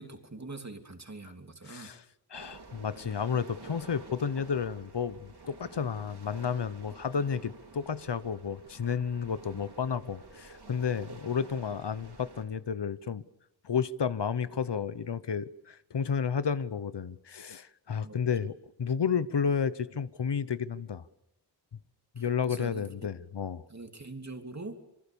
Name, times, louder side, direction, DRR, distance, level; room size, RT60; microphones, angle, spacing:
voice 1, 0.0-1.9 7.3-7.4 18.0-18.2 22.2-23.1 23.7-24.8, right 2 dB, 40° right, 5 dB, 2.9 m, -44 dB
voice 2, 1.7-2.0 2.3-13.2 13.6-21.0 22.1-23.6, left 6 dB, 80° left, 15 dB, 1.0 m, -32 dB
sound 1, 2.3-12.4, right 3 dB, 70° right, 4.9 m, -50 dB
26.5 x 24.0 x 7.0 m, 0.82 s
wide cardioid pair, 75°, 41 cm